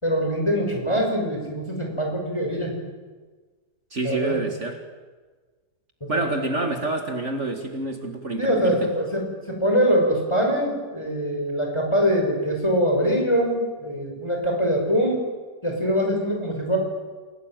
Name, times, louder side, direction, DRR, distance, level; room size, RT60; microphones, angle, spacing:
voice 1, 0.0-2.7 4.0-4.4 6.0-6.2 8.4-15.2 15.6-16.8, equal, 15° left, 1 dB, 5.9 m, -23 dB
voice 2, 3.9-4.8 6.1-8.9, right 2 dB, 45° right, 4 dB, 2.3 m, -27 dB
29.0 x 18.0 x 9.1 m, 1.4 s
omnidirectional pair, 1.7 m